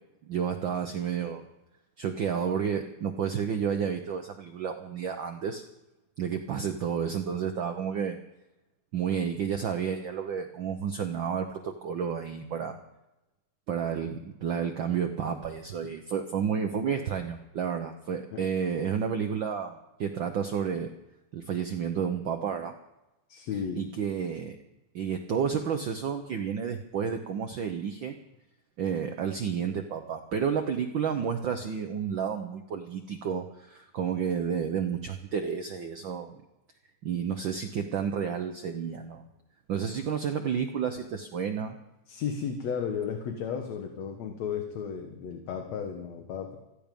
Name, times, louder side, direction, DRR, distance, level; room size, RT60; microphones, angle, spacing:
voice 1, 0.2-1.5 2.0-5.6 6.2-8.2 8.9-12.8 13.7-20.9 21.3-22.7 23.7-24.6 24.9-28.2 28.8-36.4 37.0-39.2 39.7-41.7, right 7 dB, 90° right, 5 dB, 1.0 m, -31 dB
voice 2, 23.3-23.9 42.1-46.6, left 7 dB, 70° left, 4 dB, 2.4 m, -34 dB
15.0 x 14.5 x 5.3 m, 0.98 s
omnidirectional pair, 3.3 m